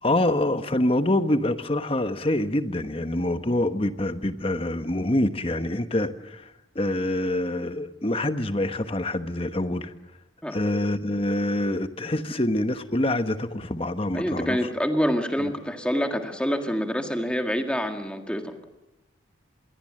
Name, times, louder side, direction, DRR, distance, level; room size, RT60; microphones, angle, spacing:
voice 1, 0.0-9.9 10.5-14.6 15.4-15.5, left 1 dB, 30° left, 10 dB, 1.1 m, -26 dB
voice 2, 14.1-18.5, equal, 5° left, 4 dB, 1.9 m, -26 dB
26.5 x 21.0 x 7.7 m, 0.95 s
head